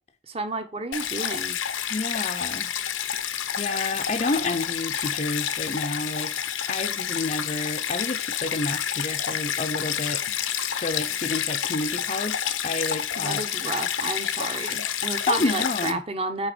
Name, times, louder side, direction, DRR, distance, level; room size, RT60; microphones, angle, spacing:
voice 1, 0.3-1.6 13.2-16.5, right 2 dB, 30° right, 0.9 m, -31 dB
Stream, 0.9-15.9, left 9 dB, 85° left, 0.8 m, -29 dB
voice 2, 1.9-2.7 3.1-6.3 6.7-13.4 15.3-16.0, left 2 dB, 35° left, 0.6 m, -30 dB
9.0 x 3.5 x 6.0 m
head